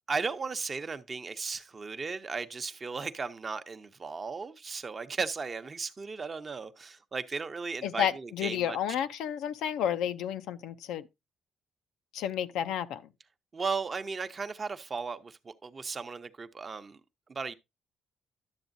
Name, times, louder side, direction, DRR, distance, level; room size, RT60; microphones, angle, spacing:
voice 1, 0.1-8.8 13.5-17.0 17.3-17.5, right 4 dB, 35° right, 0.7 m, -36 dB
voice 2, 7.8-11.1 12.1-13.0, left 9 dB, 90° left, 0.5 m, -31 dB
11.5 x 7.1 x 2.6 m
cardioid pair, 90°, 0 cm